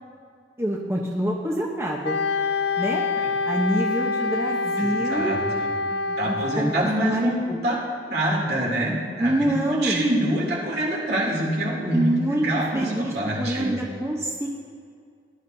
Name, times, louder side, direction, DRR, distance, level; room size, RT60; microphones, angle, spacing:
voice 1, 0.6-2.2 2.8-3.1 3.5-5.5 5.9-6.7 7.0-7.6 9.2-10.1 11.9-14.5, right 1 dB, 15° right, -2 dB, 0.8 m, -26 dB
Wind instrument woodwind instrument, 2.0-6.8, left 3 dB, 70° left, 0.4 m, -26 dB
voice 2, 4.8-5.7 6.2-7.4 7.6-7.8 8.1-13.7, right 1 dB, 65° right, -3 dB, 2.8 m, -25 dB
19.0 x 12.0 x 2.7 m, 2.2 s
head